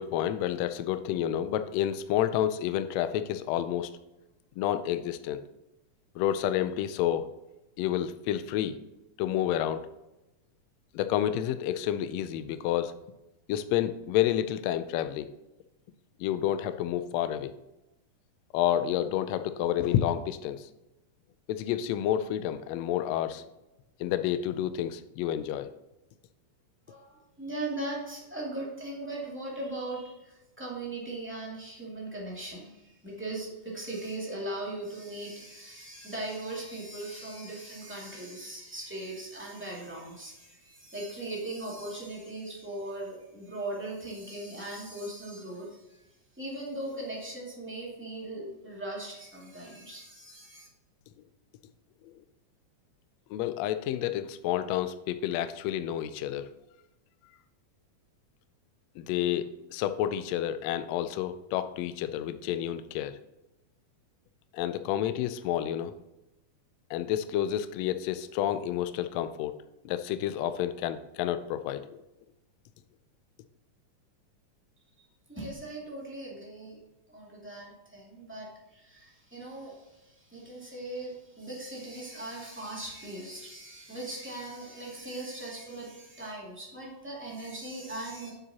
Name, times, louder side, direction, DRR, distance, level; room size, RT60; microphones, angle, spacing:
voice 1, 0.0-3.9 4.6-5.4 6.2-7.3 7.8-8.8 9.2-9.9 10.9-12.9 13.5-15.3 16.2-17.5 18.5-20.7 21.5-23.5 24.0-25.7 52.1-52.2 53.3-56.5 59.0-63.2 64.5-65.9 66.9-69.6 69.8-71.9, left 11 dB, 85° left, 11 dB, 1.5 m, -29 dB
voice 2, 26.9-46.1 46.3-50.7 75.3-76.8 77.1-88.3, right 2 dB, 5° right, -5 dB, 1.7 m, -39 dB
9.2 x 6.8 x 2.8 m, 0.95 s
omnidirectional pair, 3.6 m